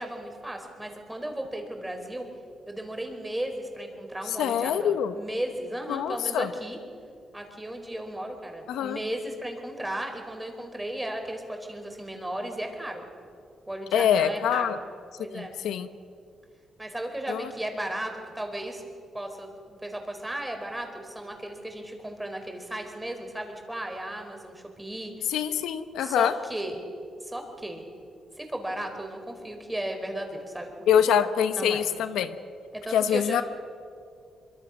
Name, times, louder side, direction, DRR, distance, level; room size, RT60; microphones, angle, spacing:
voice 1, 0.0-2.3 2.7-6.8 7.3-13.0 13.7-14.7 15.2-15.5 16.8-18.8 19.1-25.1 26.0-26.8 27.2-27.8 28.4-31.1 31.5-31.8 32.7-33.4, right 1 dB, 10° right, 4 dB, 4.7 m, -35 dB
voice 2, 4.3-5.1 5.9-6.5 8.7-9.0 13.9-14.8 15.3-15.9 17.3-17.5 25.3-26.3 30.9-32.4 32.9-33.4, left 9 dB, 85° left, 11 dB, 1.0 m, -25 dB
24.0 x 23.0 x 6.5 m, 2.3 s
cardioid pair, 75°, 0 cm